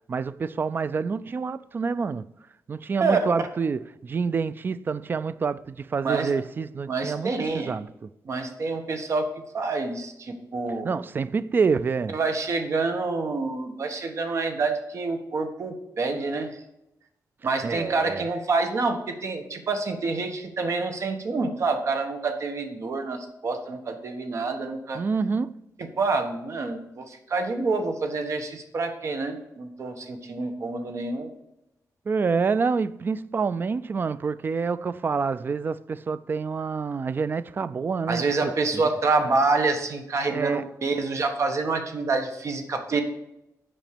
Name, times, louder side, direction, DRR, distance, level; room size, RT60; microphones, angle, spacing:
voice 1, 0.1-2.2 2.7-8.1 10.8-12.2 17.6-18.3 24.9-25.5 32.1-38.8 40.3-40.7, right 5 dB, 30° right, 0.3 m, -27 dB
voice 2, 3.0-3.5 6.0-6.3 6.9-7.7 8.2-9.3 9.5-10.9 12.1-16.5 17.4-25.0 26.0-31.3 38.1-43.0, right 3 dB, 45° right, 1.4 m, -27 dB
9.1 x 5.2 x 6.7 m
wide cardioid pair, 150°, 7 cm